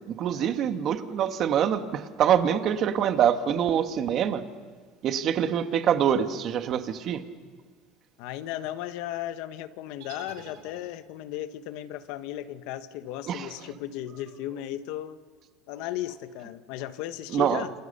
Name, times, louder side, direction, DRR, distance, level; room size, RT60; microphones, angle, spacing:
voice 1, 0.1-4.4 5.0-7.2 13.3-13.5 17.3-17.6, right 9 dB, 45° right, 8 dB, 1.7 m, -25 dB
voice 2, 8.2-15.2 15.7-17.7, left 13 dB, 70° left, 11 dB, 1.4 m, -36 dB
sound 1, 10.0-11.3, right 7 dB, 70° right, 6.1 m, -49 dB
29.0 x 28.5 x 6.9 m, 1.5 s
cardioid pair, 135°, 0 cm